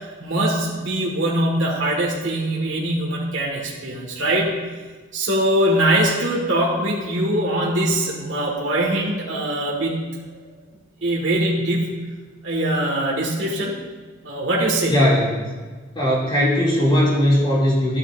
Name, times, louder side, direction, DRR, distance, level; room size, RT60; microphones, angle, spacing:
voice 1, 0.2-4.6 5.1-10.0 11.0-11.9 12.4-13.7 14.2-15.0, right 1 dB, 70° right, -3 dB, 1.9 m, -22 dB
voice 2, 14.9-15.4 15.9-18.0, equal, 25° left, -6 dB, 2.8 m, -18 dB
13.0 x 9.7 x 2.7 m, 1.4 s
head